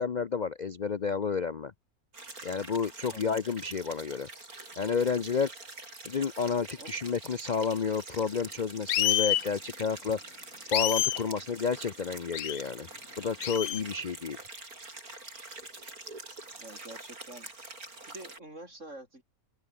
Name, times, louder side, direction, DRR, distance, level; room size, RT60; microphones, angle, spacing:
voice 1, 0.0-1.7 2.4-4.3 4.8-5.5 6.0-10.2 10.7-12.9 13.2-14.4, left 5 dB, 40° left, 0.7 m, -30 dB
sound 1, 2.1-18.4, right 2 dB, 85° right, 5.5 m, -46 dB
sound 2, 8.9-9.4 10.7-11.2 12.3-12.6 13.4-13.8, left 13 dB, 75° left, 1.1 m, -27 dB
voice 2, 16.6-17.5 18.1-19.2, right 1 dB, 55° right, 8.1 m, -47 dB
open air
omnidirectional pair, 1.5 m